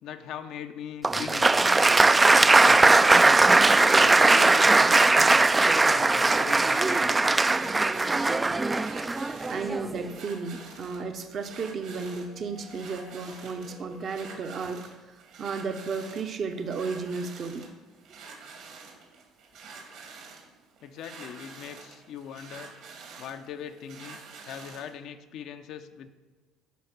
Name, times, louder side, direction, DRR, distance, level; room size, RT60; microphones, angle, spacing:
voice 1, 0.0-1.6 2.3-3.2 3.6-5.5 5.8-7.3 14.5-14.6 20.8-22.7 23.2-26.1, left 8 dB, 65° left, 8 dB, 0.6 m, -41 dB
Applause, 1.0-10.0, right 3 dB, 15° right, 0.3 m, -20 dB
Singing, 5.1-14.6, left 3 dB, 85° left, 2.4 m, -51 dB
sound 1, 6.0-24.9, right 4 dB, 70° right, 2.1 m, -47 dB
voice 2, 9.5-14.8 15.1-17.7, right 4 dB, 45° right, 7 dB, 0.8 m, -33 dB
8.3 x 4.8 x 5.9 m, 1.3 s
supercardioid pair, 95°, 0 cm